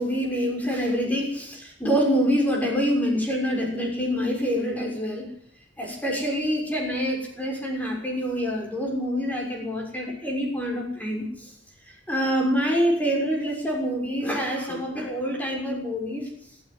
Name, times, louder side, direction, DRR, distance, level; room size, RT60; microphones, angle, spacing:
voice 1, 0.0-5.3 5.8-11.5 12.1-16.3, equal, 10° left, -1 dB, 6.5 m, -26 dB
26.5 x 10.0 x 9.8 m, 0.65 s
head